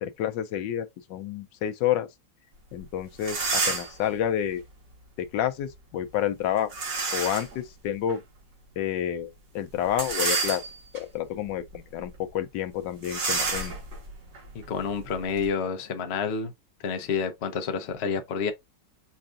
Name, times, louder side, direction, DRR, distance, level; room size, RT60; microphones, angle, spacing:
voice 1, 0.0-2.1 2.7-4.6 5.2-6.7 7.1-8.2 8.8-9.3 9.5-10.6 10.9-13.7, left 10 dB, 85° left, 1.3 m, -29 dB
sound 1, 2.8-2.9 3.2-4.0 6.7-7.6 8.1-8.2 9.9-11.0 11.6-11.8 12.0-12.2 13.0-15.5, right 4 dB, 70° right, 2.2 m, -29 dB
voice 2, 14.5-16.5 16.8-18.5, left 6 dB, 55° left, 0.7 m, -29 dB
5.6 x 2.5 x 2.4 m
omnidirectional pair, 1.9 m